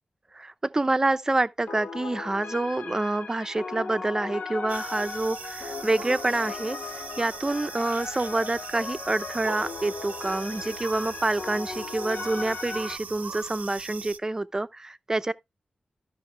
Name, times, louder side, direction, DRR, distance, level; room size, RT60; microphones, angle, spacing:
voice 1, 0.3-15.3, right 2 dB, 20° right, 0.6 m, -27 dB
sound 1, 1.7-13.0, left 4 dB, 75° left, 0.7 m, -37 dB
sound 2, 4.7-14.2, right 6 dB, 80° right, 0.6 m, -40 dB
13.0 x 5.8 x 3.3 m
wide cardioid pair, 140°, 3 cm